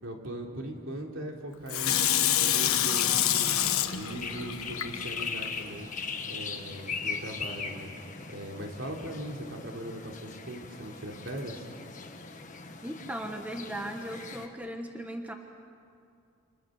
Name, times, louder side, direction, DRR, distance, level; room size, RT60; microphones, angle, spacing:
voice 1, 0.0-2.1 2.4-5.9 6.3-7.9 8.3-11.7, right 1 dB, 65° right, 0 dB, 3.5 m, -40 dB
Water tap faucet / Sink (filling or washing), 1.7-5.5 6.0-6.1, left 11 dB, 90° left, 1.4 m, -27 dB
sound 1, 3.0-14.5, left 5 dB, 35° left, 1.7 m, -40 dB
voice 2, 12.8-15.3, right 1 dB, 5° right, 3 dB, 1.3 m, -37 dB
29.0 x 27.0 x 6.6 m, 2.4 s
head